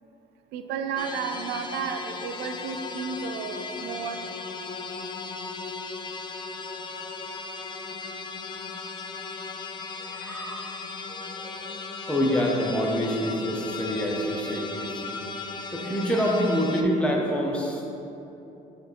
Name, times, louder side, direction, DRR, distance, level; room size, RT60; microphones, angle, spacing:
voice 1, 0.5-4.2, right 6 dB, 80° right, 7 dB, 0.4 m, -32 dB
sound 1, 1.0-16.8, left 4 dB, 25° left, 0.4 m, -36 dB
voice 2, 10.0-11.8 12.1-15.2 15.7-17.8, equal, 5° left, -2 dB, 0.9 m, -27 dB
6.2 x 3.3 x 4.6 m, 2.9 s
cardioid pair, 110°, 17 cm